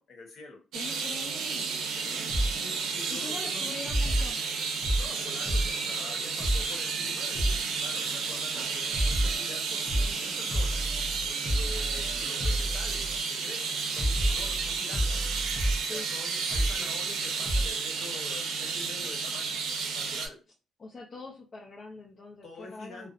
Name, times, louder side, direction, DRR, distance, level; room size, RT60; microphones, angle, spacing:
voice 1, 0.0-0.6 2.6-3.7 4.9-10.8 11.2-15.1 15.8-19.6 19.9-20.4 22.4-23.1, left 3 dB, 65° left, 1 dB, 1.0 m, -46 dB
voice 2, 0.7-1.7 3.1-4.4 15.9-16.1 20.8-23.1, left 3 dB, 45° left, -2 dB, 0.5 m, -43 dB
sound 1, 0.7-20.3, right 5 dB, 85° right, 0.5 m, -32 dB
sound 2, 2.3-2.5 2.9-3.2 3.9-5.1 5.5-5.8 6.1-6.2 6.4-6.8 7.0-7.1 7.3-7.7 8.0-8.3 8.6-13.4 13.7-13.8 14.0-15.8 16.5-16.9 17.5-17.7 18.1-18.2 18.4-18.5, right 1 dB, 5° left, 0.9 m, -29 dB
2.6 x 2.0 x 2.5 m, 0.32 s
cardioid pair, 90°, 0 cm